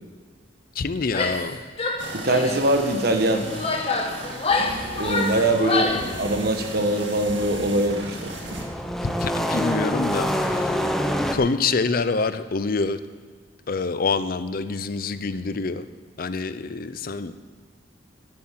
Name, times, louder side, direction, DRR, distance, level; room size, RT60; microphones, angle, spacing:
voice 1, 0.8-1.6 5.8-6.2 9.0-10.7 11.3-13.0 13.7-15.8 16.2-17.3, left 4 dB, 50° left, 12 dB, 0.5 m, -26 dB
Female speech woman speaking / Yell, 1.1-1.5 1.8-2.6 3.3-6.1, left 3 dB, 30° left, 1.2 m, -26 dB
sound 1, 2.0-8.7, right 2 dB, 80° right, 1.9 m, -36 dB
voice 2, 2.1-3.5 5.0-8.3, right 1 dB, 55° right, 5 dB, 1.3 m, -22 dB
sound 2, 8.0-11.4, equal, ahead, 0.7 m, -26 dB
11.5 x 8.8 x 7.4 m, 1.6 s
head